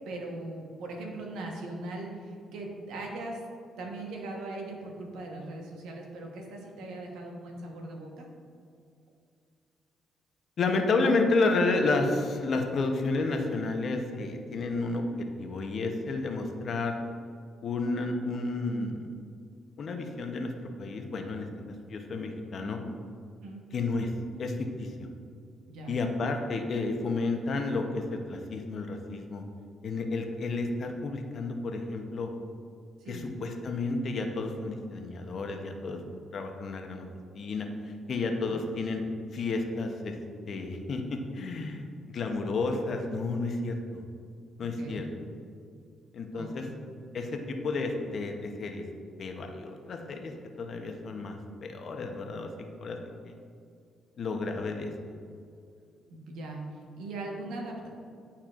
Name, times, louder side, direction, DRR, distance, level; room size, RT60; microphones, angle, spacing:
voice 1, 0.0-3.4 3.8-8.3 23.4-23.6 25.7-25.9 33.0-33.3 38.5-38.6 44.8-45.0 46.3-46.7 56.1-56.6 57.0-57.9, right 2 dB, 85° right, 0 dB, 1.1 m, -39 dB
voice 2, 10.6-15.0 15.4-16.9 17.6-19.0 19.8-20.5 20.8-21.5 21.9-22.8 23.7-24.1 24.4-25.1 25.9-29.4 29.8-32.3 33.1-36.0 36.3-37.1 37.3-39.0 39.3-40.2 40.5-44.0 44.6-45.1 46.1-46.7 47.1-48.8 49.2-52.5 52.8-53.0 53.2-53.3 54.2-54.9, left 3 dB, 55° left, 4 dB, 0.8 m, -31 dB
10.5 x 4.3 x 2.5 m, 2.3 s
cardioid pair, 90°, 0 cm